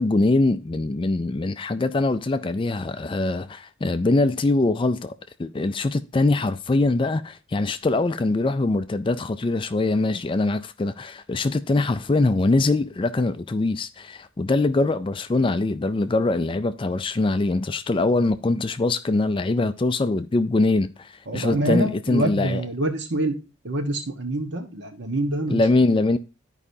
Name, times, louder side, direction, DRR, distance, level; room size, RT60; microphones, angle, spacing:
voice 1, 0.0-5.1 5.4-22.7 25.5-26.2, left 2 dB, 25° left, 0.3 m, -23 dB
voice 2, 21.3-23.4 23.6-25.6, right 1 dB, 55° right, 1.2 m, -26 dB
13.0 x 4.9 x 2.7 m
head